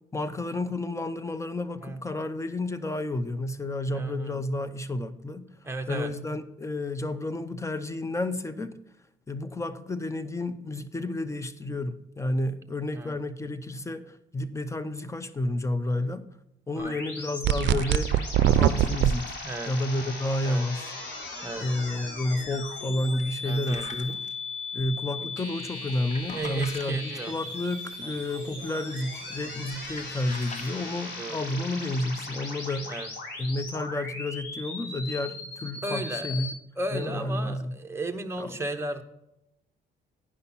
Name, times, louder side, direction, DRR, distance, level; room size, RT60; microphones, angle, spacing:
voice 1, 0.1-5.5 5.9-8.8 9.3-16.3 16.7-18.2 18.5-19.4 19.7-20.9 21.6-24.2 24.7-32.9 33.4-36.5 36.9-37.7 38.4-38.6, left 1 dB, 15° left, 12 dB, 0.7 m, -31 dB
voice 2, 3.9-4.4 5.6-6.1 12.9-13.1 15.9-16.1 16.7-17.0 19.4-19.7 20.4-20.6 21.4-21.7 23.4-23.8 25.2-25.3 26.3-27.3 28.0-28.1 31.2-31.4 32.8-33.1 35.8-36.5 36.8-39.0, right 2 dB, 15° right, 4 dB, 0.9 m, -35 dB
sound 1, 16.8-36.5, left 3 dB, 65° left, 3.7 m, -38 dB
sound 2, 17.4-19.1, right 11 dB, 65° right, 0.5 m, -21 dB
sound 3, 23.1-24.3 25.7-26.9 29.1-29.3 29.7-30.7, left 3 dB, 35° left, 1.3 m, -43 dB
9.8 x 5.7 x 5.6 m, 0.86 s
cardioid pair, 90°, 20 cm